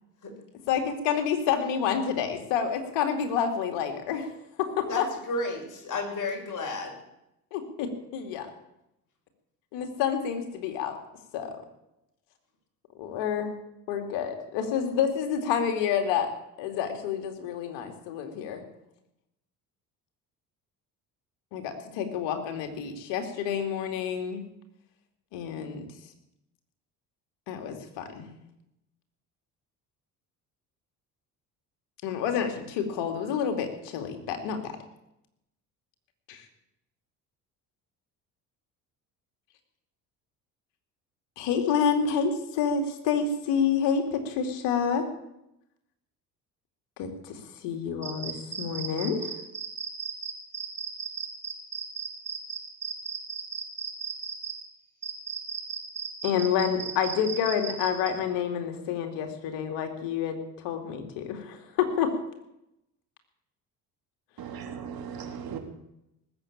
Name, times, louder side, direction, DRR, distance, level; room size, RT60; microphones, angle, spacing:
voice 1, 0.7-4.3 4.6-5.0 7.5-8.5 9.7-11.0 11.3-11.5 12.9-13.6 13.9-16.3 16.6-18.6 21.5-24.5 25.3-25.8 27.5-28.3 32.0-34.7 36.3-36.4 41.4-45.0 47.0-49.3 56.2-62.1, left 7 dB, 70° left, 5 dB, 2.8 m, -28 dB
voice 2, 4.9-6.9, left 2 dB, 45° left, 2 dB, 6.0 m, -32 dB
sound 1, 48.0-54.5 55.0-58.1, right 6 dB, 35° right, 5.9 m, -35 dB
voice 3, 64.4-65.6, right 7 dB, 50° right, 4 dB, 3.5 m, -37 dB
19.0 x 8.1 x 8.7 m, 0.85 s
hypercardioid pair, 60°, 44 cm